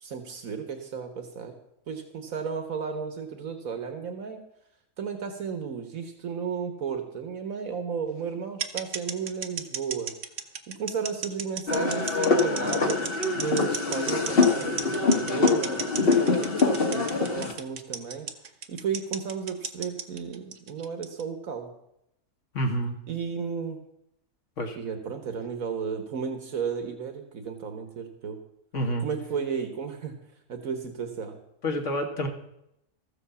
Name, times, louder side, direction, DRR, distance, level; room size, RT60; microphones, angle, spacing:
voice 1, 0.0-1.5 1.9-4.4 5.0-10.1 10.8-15.8 16.1-18.3 18.7-21.7 23.1-23.8 24.7-28.4 29.0-30.1 30.5-31.4, right 6 dB, 75° right, 6 dB, 1.7 m, -33 dB
sound 1, 8.6-21.2, right 6 dB, 55° right, 1.2 m, -33 dB
sound 2, 11.7-17.5, left 4 dB, 45° left, 1.6 m, -24 dB
voice 2, 22.5-23.0 24.6-24.8 28.7-29.1 31.6-32.3, equal, 60° left, 3 dB, 2.1 m, -28 dB
14.0 x 8.0 x 7.0 m, 0.80 s
omnidirectional pair, 1.5 m